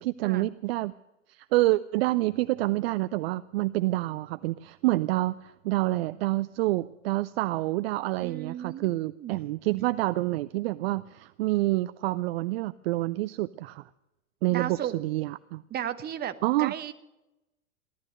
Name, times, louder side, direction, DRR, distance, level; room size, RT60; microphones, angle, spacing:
voice 1, 0.0-0.9 1.3-13.9 14.4-15.6 16.4-16.7, right 18 dB, 50° right, 14 dB, 0.5 m, -28 dB
voice 2, 8.2-9.4 14.5-14.9 15.7-16.9, right 11 dB, 25° right, 10 dB, 1.1 m, -35 dB
17.0 x 12.0 x 6.5 m, 0.94 s
hypercardioid pair, 105°, 38 cm